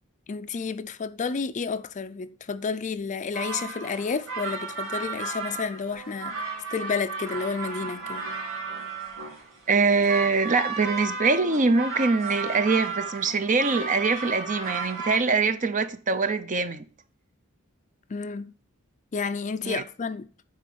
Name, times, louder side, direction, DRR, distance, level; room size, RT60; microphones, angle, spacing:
voice 1, 0.3-6.4 6.7-8.3 18.1-18.5 19.1-20.3, left 5 dB, 35° left, 0.4 m, -31 dB
sound 1, 3.3-15.2, right 4 dB, 65° right, 3.1 m, -34 dB
voice 2, 9.7-16.8 19.6-19.8, right 4 dB, 40° right, 0.7 m, -23 dB
9.7 x 4.0 x 6.8 m
head